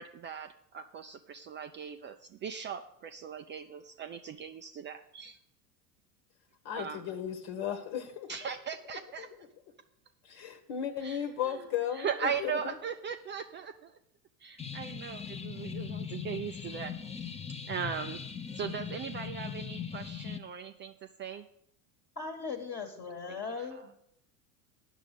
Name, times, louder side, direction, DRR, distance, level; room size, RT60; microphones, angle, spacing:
voice 1, 0.0-5.4 6.7-7.0 8.3-9.3 11.0-14.0 14.4-17.3 17.7-18.2 18.5-20.9 21.2-21.5 23.3-23.9, right 7 dB, 25° right, 7 dB, 0.4 m, -39 dB
voice 2, 6.6-8.3 9.2-9.3 10.2-12.7, left 9 dB, 60° left, 6 dB, 1.3 m, -35 dB
sound 1, 14.6-20.4, left 7 dB, 15° left, 0.8 m, -40 dB
voice 3, 22.1-24.0, left 4 dB, 30° left, 2 dB, 1.4 m, -39 dB
9.1 x 6.4 x 8.2 m, 0.75 s
hypercardioid pair, 100°, 46 cm